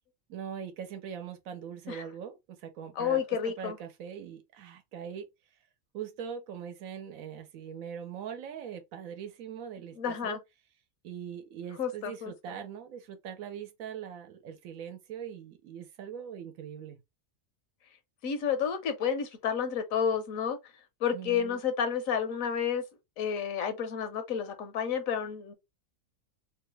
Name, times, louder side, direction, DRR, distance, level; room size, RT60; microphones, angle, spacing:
voice 1, 0.3-5.3 5.9-10.4 11.0-17.0 21.1-21.6, right 8 dB, 85° right, 1.1 m, -41 dB
voice 2, 2.9-3.8 10.0-10.4 11.8-12.6 18.2-20.6 21.0-22.8 23.2-25.5, left 7 dB, 80° left, 1.2 m, -30 dB
3.1 x 2.3 x 3.1 m
omnidirectional pair, 1.4 m